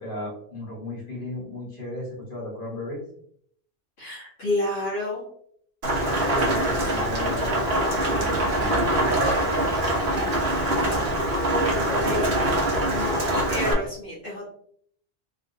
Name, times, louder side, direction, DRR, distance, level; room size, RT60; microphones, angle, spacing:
voice 1, 0.0-3.0 5.9-7.7 8.0-10.7 11.6-12.3, equal, 55° left, -5 dB, 1.6 m, -35 dB
voice 2, 4.0-5.2 6.2-6.7 11.5-12.3 12.9-14.4, left 1 dB, 75° left, -7 dB, 1.5 m, -30 dB
Rain, 5.8-13.7, right 1 dB, 75° right, 1.1 m, -24 dB
3.2 x 3.1 x 2.6 m, 0.65 s
omnidirectional pair, 1.0 m